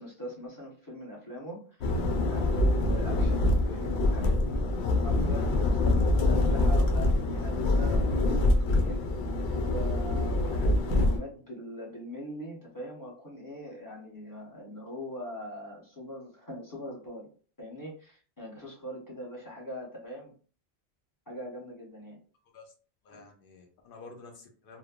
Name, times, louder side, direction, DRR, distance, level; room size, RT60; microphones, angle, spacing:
voice 1, 0.0-4.6 5.0-9.1 9.5-17.3 17.6-20.3 21.3-22.2, left 1 dB, 20° left, -4 dB, 0.9 m, -41 dB
sound 1, 1.8-11.2, left 2 dB, 90° left, 0.9 m, -25 dB
voice 2, 23.0-24.8, left 3 dB, 60° left, 3 dB, 0.8 m, -50 dB
3.1 x 2.0 x 2.3 m, 0.41 s
omnidirectional pair, 1.1 m